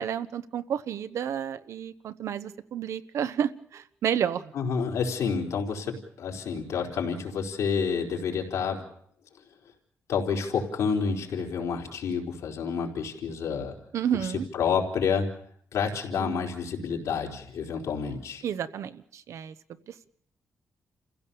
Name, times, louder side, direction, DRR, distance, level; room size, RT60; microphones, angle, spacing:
voice 1, 0.0-4.4 13.9-14.4 16.2-16.4 18.4-19.5, right 9 dB, 70° right, 13 dB, 1.0 m, -30 dB
voice 2, 4.5-8.8 10.1-13.7 14.2-15.3 15.7-18.4, left 6 dB, 80° left, 0 dB, 4.2 m, -29 dB
29.5 x 16.0 x 7.0 m, 0.67 s
wide cardioid pair, 165°, 5 cm